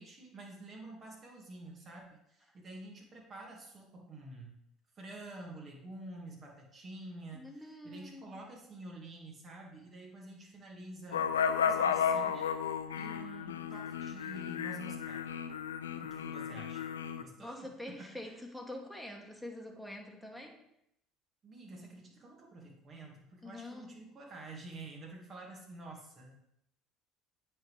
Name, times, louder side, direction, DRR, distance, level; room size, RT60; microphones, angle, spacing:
voice 1, 0.0-4.5 5.0-12.5 13.0-15.2 16.0-18.0 21.4-26.3, right 2 dB, 40° right, 0 dB, 2.3 m, -49 dB
voice 2, 7.3-8.4 17.4-20.6 23.4-24.1, left 1 dB, ahead, 2 dB, 1.6 m, -46 dB
sound 1, 11.1-17.2, left 7 dB, 90° left, 0.4 m, -33 dB
8.8 x 3.9 x 5.0 m, 0.80 s
hypercardioid pair, 65°, 0 cm